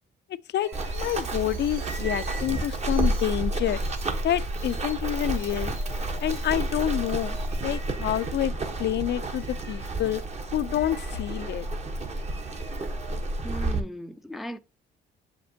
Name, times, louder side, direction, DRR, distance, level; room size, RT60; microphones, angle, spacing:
voice 1, 0.5-3.8 4.2-5.8 6.2-8.5 8.8-10.2 10.5-11.7, left 12 dB, 60° left, 0.4 m, -28 dB
sound 1, 0.6-8.4 8.9-13.2, right 3 dB, 90° right, 2.4 m, -46 dB
Run, 0.7-13.8, right 2 dB, 35° right, 1.1 m, -30 dB
voice 2, 13.4-14.6, equal, ahead, 0.4 m, -37 dB
7.0 x 5.1 x 2.7 m
cardioid pair, 90°, 20 cm